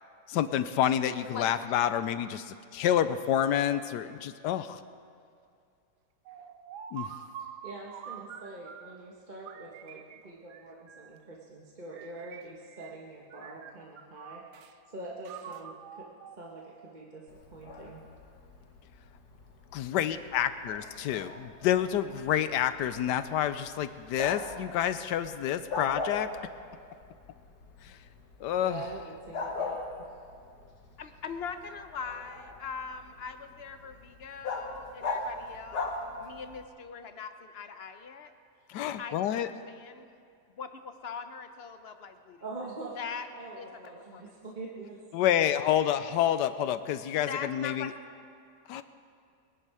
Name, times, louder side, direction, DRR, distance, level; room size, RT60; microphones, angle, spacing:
voice 1, 0.3-4.8 6.9-7.1 19.7-26.3 27.8-27.9 28.4-28.8 38.7-39.5 45.1-47.9 48.7-48.8, left 10 dB, 85° left, 12 dB, 1.3 m, -28 dB
sound 1, 6.3-9.0 9.5-11.3 11.9-13.0 13.3-14.8 15.2-17.0, right 8 dB, 75° right, 1.2 m, -46 dB
voice 2, 7.4-14.4 14.9-16.1 16.4-17.2 17.5-18.0 28.6-29.8 42.4-43.0 43.3-45.0, right 2 dB, 30° right, -3 dB, 1.4 m, -44 dB
Bark, 17.3-36.6, left 3 dB, 70° left, 2.0 m, -41 dB
voice 3, 31.0-35.9 36.1-38.3 39.0-40.1 40.6-42.4 43.0-43.3 43.6-43.8 44.1-44.3 47.3-47.9, left 6 dB, 50° left, 8 dB, 0.8 m, -41 dB
21.5 x 11.0 x 4.9 m, 2.3 s
omnidirectional pair, 1.8 m